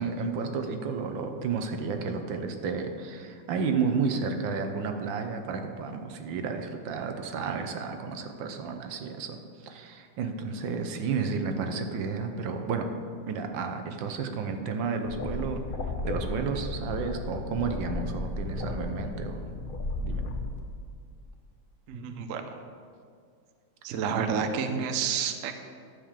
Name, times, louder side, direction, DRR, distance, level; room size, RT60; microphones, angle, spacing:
voice 1, 0.0-9.4 9.6-12.9 13.3-15.6 16.0-19.5 20.0-20.2, right 5 dB, 80° right, 6 dB, 1.6 m, -32 dB
sound 1, 15.0-20.6, left 2 dB, 45° left, 0.6 m, -34 dB
voice 2, 21.9-22.4 23.8-25.5, right 6 dB, 60° right, 7 dB, 0.9 m, -29 dB
10.5 x 5.1 x 7.3 m, 2.2 s
omnidirectional pair, 2.0 m